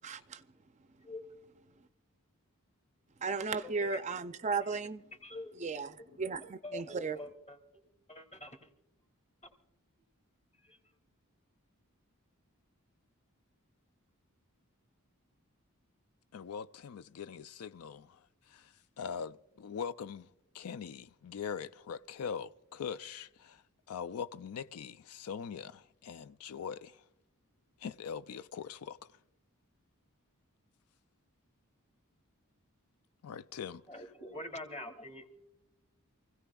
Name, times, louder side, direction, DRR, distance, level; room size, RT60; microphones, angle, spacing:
voice 1, 0.0-0.4 3.2-5.0 5.6-5.9 6.2-7.2, right 4 dB, 35° right, 0.5 m, -35 dB
voice 2, 3.6-4.0 4.6-4.8 5.2-5.9 6.6-7.6 8.1-8.7 10.6-10.8 33.9-35.3, left 1 dB, 30° left, 2.3 m, -45 dB
voice 3, 16.3-18.2 18.5-20.3 20.5-23.6 23.9-27.0 27.8-29.0 33.2-33.8, left 7 dB, 90° left, 0.4 m, -42 dB
28.0 x 16.5 x 2.3 m
head